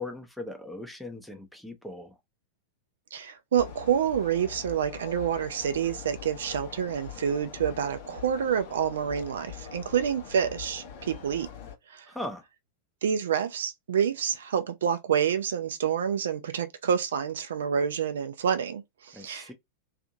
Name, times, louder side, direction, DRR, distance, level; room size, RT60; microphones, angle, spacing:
voice 1, 0.0-2.1 12.1-12.4 19.1-19.5, left 2 dB, ahead, 0.6 m, -39 dB
voice 2, 3.1-11.5 11.9-12.1 13.0-19.5, right 8 dB, 65° right, 0.4 m, -28 dB
sound 1, 3.5-11.8, left 7 dB, 50° left, 0.7 m, -43 dB
2.7 x 2.4 x 2.6 m
figure-of-eight pair, 90°, 0 cm